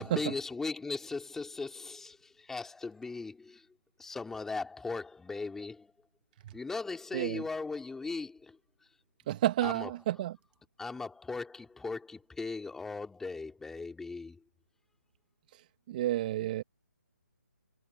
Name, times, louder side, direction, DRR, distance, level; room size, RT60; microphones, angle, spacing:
voice 1, 0.0-3.7 4.0-5.9 6.5-8.6 9.6-9.9 10.8-14.4, left 3 dB, 5° left, 3.5 m, -38 dB
voice 2, 9.3-10.3 15.9-16.6, right 14 dB, 30° right, 1.1 m, -30 dB
figure-of-eight pair, 150°, 9 cm